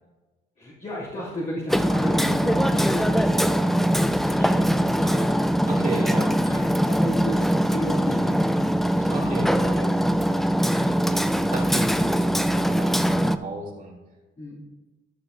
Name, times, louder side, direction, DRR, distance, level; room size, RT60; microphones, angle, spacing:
voice 1, 0.6-6.0 6.4-9.5 10.7-11.1 14.4-14.6, equal, 40° left, -11 dB, 3.1 m, -34 dB
Hammer, 1.7-13.4, equal, ahead, 0.3 m, -22 dB
voice 2, 5.6-6.3 9.1-13.9, right 2 dB, 45° right, -4 dB, 2.7 m, -34 dB
14.0 x 5.9 x 2.8 m, 1.2 s
cardioid pair, 90°, 20 cm